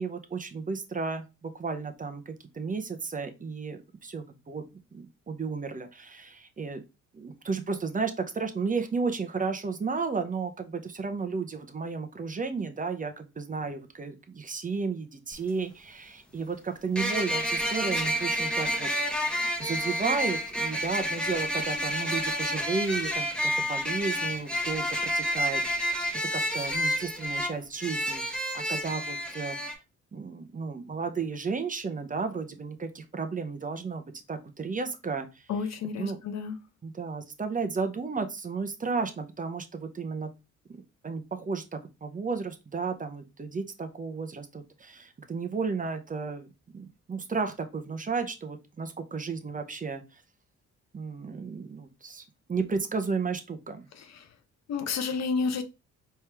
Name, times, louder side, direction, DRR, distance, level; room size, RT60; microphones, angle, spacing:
voice 1, 0.0-4.6 4.9-6.8 7.1-25.6 26.3-29.6 30.1-35.5 36.0-36.2 36.8-40.3 41.0-50.2 50.9-53.9, right 4 dB, 25° right, 0.8 m, -33 dB
sound 1, 15.3-15.4 17.0-29.7, equal, 5° left, 1.3 m, -29 dB
voice 2, 35.5-36.6 53.9-54.3 54.7-55.6, left 5 dB, 60° left, 0.8 m, -31 dB
4.5 x 3.2 x 3.4 m
cardioid pair, 90°, 30 cm